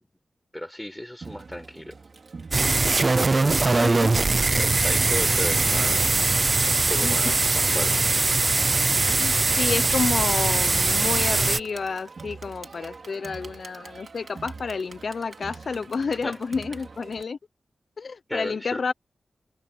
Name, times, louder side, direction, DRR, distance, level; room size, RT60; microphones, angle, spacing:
voice 1, 0.5-1.9 3.1-4.1 4.4-6.2 6.7-8.0 16.0-16.4 18.3-18.8, left 1 dB, 10° left, 5.1 m, -35 dB
Crowd, 1.2-17.2, right 4 dB, 55° right, 4.5 m, -43 dB
sound 1, 2.5-11.6, right 3 dB, 35° right, 0.6 m, -21 dB
voice 2, 7.0-7.3 9.2-17.4 18.0-18.9, left 5 dB, 65° left, 0.8 m, -30 dB
wide cardioid pair, 110°, 0 cm